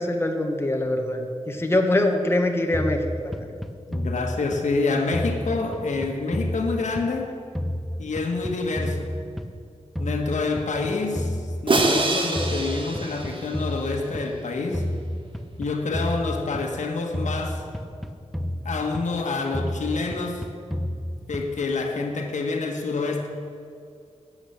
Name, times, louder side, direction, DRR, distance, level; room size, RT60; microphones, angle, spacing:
voice 1, 0.0-3.5, left 1 dB, 20° left, 3 dB, 1.1 m, -24 dB
sound 1, 2.7-4.8 5.1-7.3 7.6-9.7 10.0-12.1 12.4-14.3 14.7-16.8 17.1-19.2 19.5-21.7, equal, ahead, 0.6 m, -31 dB
voice 2, 3.9-7.4 8.0-9.2 10.0-11.4 11.6-14.8 15.6-17.6 18.6-20.5 21.3-23.3, left 3 dB, 85° left, 3 dB, 1.5 m, -27 dB
Crash cymbal, 11.7-13.9, right 2 dB, 45° right, 1.3 m, -25 dB
12.5 x 8.7 x 6.9 m, 2.4 s
wide cardioid pair, 110°, 12 cm